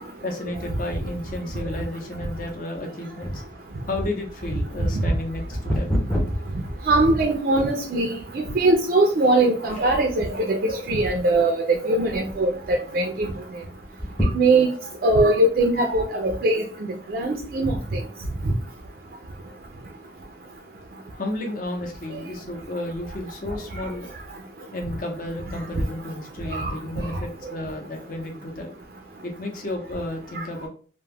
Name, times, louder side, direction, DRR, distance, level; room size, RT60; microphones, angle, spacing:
voice 1, 0.2-3.4 3.9-6.0 21.1-24.1 24.7-28.7 29.2-30.7, left 1 dB, 50° left, 2 dB, 0.6 m, -32 dB
sound 1, 3.2-7.7 8.3-8.4 9.0-9.3 9.6-10.3 10.8-11.5 11.9-12.0 12.2-12.3 13.8-15.0 15.6-15.7, equal, 5° left, 0.5 m, -29 dB
voice 2, 6.9-13.3 14.3-14.7 15.0-16.6 17.1-18.0 26.5-26.7, right 2 dB, 50° right, 3 dB, 0.3 m, -21 dB
2.2 x 2.1 x 3.2 m, 0.41 s
head